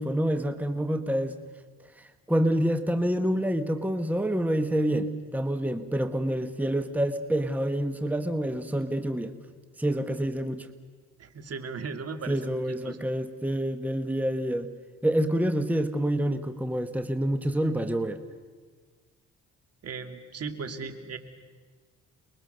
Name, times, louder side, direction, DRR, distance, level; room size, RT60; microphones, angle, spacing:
voice 1, 0.0-1.4 2.0-9.3 9.8-10.7 12.3-14.7 15.0-18.2, right 1 dB, 5° right, 8 dB, 1.2 m, -27 dB
voice 2, 11.2-13.0 19.8-21.2, right 5 dB, 55° right, 7 dB, 2.4 m, -37 dB
29.5 x 21.5 x 6.7 m, 1.5 s
cardioid pair, 90°, 30 cm